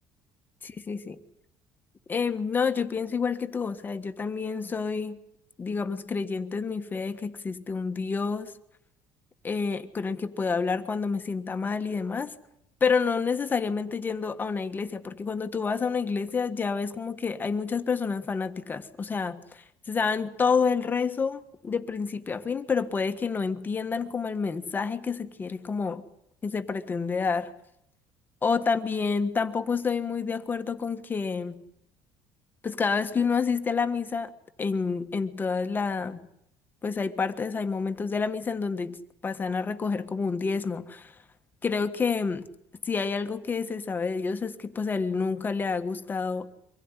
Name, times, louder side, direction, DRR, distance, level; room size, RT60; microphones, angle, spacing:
voice 1, 0.9-1.2 2.1-5.2 5.6-8.5 9.4-12.3 12.8-26.0 26.4-27.5 28.4-31.6 32.6-34.3 34.6-36.2 36.8-41.2 41.6-42.5 42.8-46.6, left 5 dB, 25° left, 1.5 m, -28 dB
24.5 x 16.0 x 9.8 m
cardioid pair, 130°, 8 cm